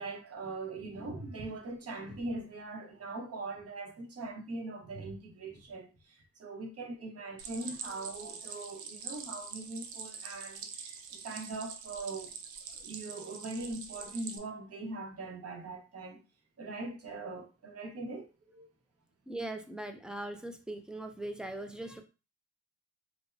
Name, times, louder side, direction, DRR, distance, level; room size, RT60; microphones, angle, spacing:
voice 1, 0.0-12.3 12.7-16.2 16.6-18.7, right 2 dB, 50° right, 1.2 m, -41 dB
Stream, 7.4-14.4, right 6 dB, 75° right, 0.6 m, -44 dB
voice 2, 19.3-22.0, right 1 dB, 5° right, 0.5 m, -40 dB
4.7 x 2.1 x 2.7 m
cardioid pair, 90°, 30 cm